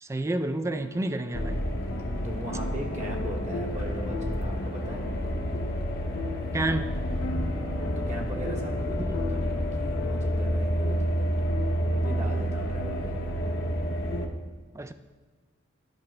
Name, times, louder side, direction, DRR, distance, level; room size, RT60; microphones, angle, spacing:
voice 1, 0.0-1.6 6.5-7.0 9.0-9.2 14.7-14.9, right 2 dB, 15° right, 10 dB, 0.3 m, -30 dB
sound 1, 0.6-14.3, left 2 dB, 75° left, 0.6 m, -40 dB
sound 2, 1.3-14.3, equal, 50° left, 0.9 m, -29 dB
voice 2, 2.2-5.1 7.6-9.0 9.3-11.5 11.7-13.2, equal, 35° right, 0 dB, 1.0 m, -39 dB
12.0 x 5.5 x 3.2 m, 1.4 s
head